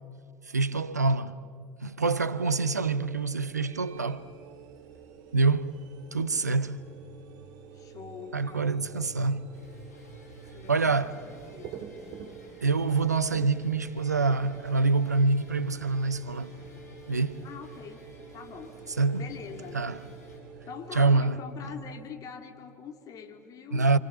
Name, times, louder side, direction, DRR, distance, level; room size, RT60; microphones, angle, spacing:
voice 1, 0.5-1.4 1.8-4.3 5.3-5.8 6.1-6.8 8.3-9.5 10.7-11.2 12.6-16.5 17.1-17.5 19.0-19.2 19.7-20.0 20.9-21.4 23.7-24.0, right 3 dB, 85° right, 0.7 m, -26 dB
sound 1, 2.3-21.4, right 7 dB, 50° right, 2.8 m, -47 dB
voice 2, 7.7-8.8 10.5-11.9 17.4-18.1 18.3-18.8 19.1-19.9 20.6-23.9, left 7 dB, 40° left, 3.0 m, -44 dB
sound 2, 9.5-20.4, left 2 dB, 75° left, 6.3 m, -54 dB
28.0 x 27.5 x 7.1 m
figure-of-eight pair, 70°, 9 cm